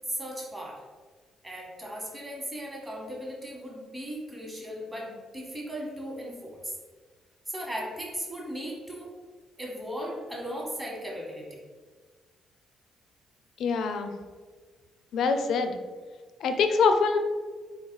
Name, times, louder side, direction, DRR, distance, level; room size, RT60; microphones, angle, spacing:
voice 1, 0.1-0.8 1.4-6.8 7.5-9.1 9.6-11.6, equal, 15° right, -2 dB, 1.1 m, -37 dB
voice 2, 13.6-14.1 15.1-15.7 16.4-17.2, left 5 dB, 75° left, 7 dB, 0.4 m, -24 dB
4.0 x 2.3 x 3.7 m, 1.4 s
cardioid pair, 90°, 0 cm